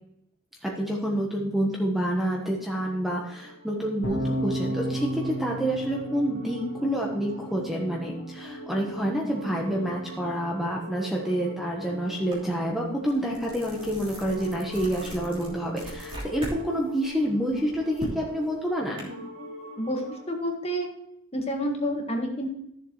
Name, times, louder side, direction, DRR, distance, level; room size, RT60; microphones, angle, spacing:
voice 1, 0.6-19.2, equal, ahead, -1 dB, 1.2 m, -28 dB
sound 1, 2.7-20.3, equal, 40° right, 4.5 m, -43 dB
sound 2, 4.0-10.3, right 1 dB, 75° left, 2.1 m, -34 dB
sound 3, 12.3-12.5 12.9-16.6 17.0-19.0, right 1 dB, 25° right, 3.1 m, -39 dB
voice 2, 20.3-20.9 21.3-22.5, equal, 30° left, 1 dB, 1.7 m, -28 dB
13.5 x 7.3 x 3.2 m, 0.76 s
head